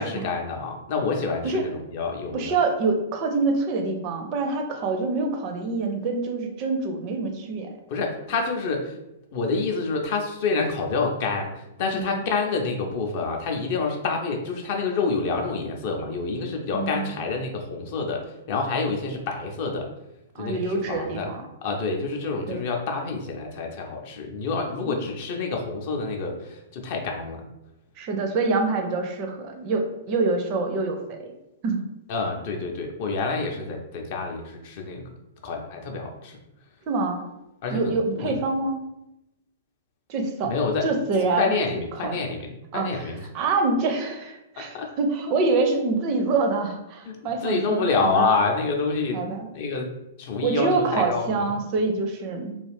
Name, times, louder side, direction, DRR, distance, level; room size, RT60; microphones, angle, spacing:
voice 1, 0.0-2.5 7.9-9.0 9.3-18.2 18.5-19.9 20.4-21.4 21.6-27.5 32.1-35.0 35.4-36.4 37.6-38.4 40.4-40.9 41.4-43.2 44.6-44.9 45.3-45.4 47.1-49.2 49.5-49.9 50.2-51.4, left 4 dB, 45° left, 2 dB, 0.5 m, -27 dB
voice 2, 2.3-7.7 11.9-12.2 16.7-17.2 20.4-21.4 22.5-22.6 24.8-25.0 28.0-31.3 31.6-31.8 36.9-37.2 37.7-38.8 40.1-40.5 40.8-41.5 42.0-42.2 42.7-48.3 49.1-49.5 50.4-52.6, right 3 dB, 35° right, 4 dB, 0.4 m, -26 dB
2.4 x 2.3 x 3.2 m, 0.89 s
figure-of-eight pair, 105°, 0 cm